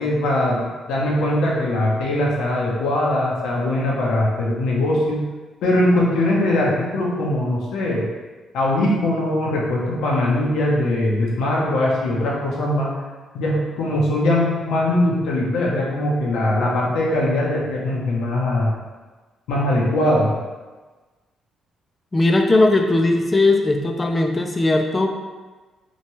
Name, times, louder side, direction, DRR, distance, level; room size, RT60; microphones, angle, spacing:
voice 1, 0.0-5.2 5.6-8.0 8.5-12.9 13.3-18.7 19.5-20.3, left 1 dB, 90° left, -4 dB, 0.6 m, -21 dB
voice 2, 22.1-25.1, left 2 dB, 20° left, 4 dB, 0.3 m, -18 dB
2.8 x 2.2 x 2.9 m, 1.3 s
cardioid pair, 95°, 0 cm